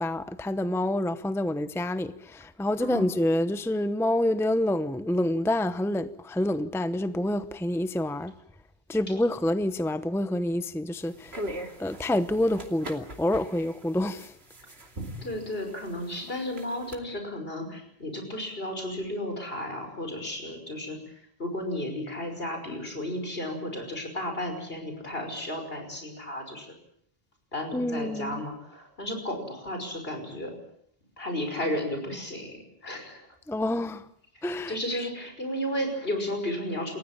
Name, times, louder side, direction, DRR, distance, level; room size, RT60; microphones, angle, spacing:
voice 1, 0.0-8.3 8.9-11.3 11.8-14.3 27.7-28.4 33.5-34.0 34.4-35.1, left 1 dB, 5° left, 0.8 m, -27 dB
voice 2, 2.8-3.1 15.2-21.0 21.4-26.7 27.5-30.5 31.2-33.3 34.7-37.0, left 1 dB, 70° left, 5.9 m, -33 dB
sound 1, 11.0-17.0, right 1 dB, 85° right, 3.1 m, -41 dB
30.0 x 15.0 x 8.9 m
omnidirectional pair, 1.0 m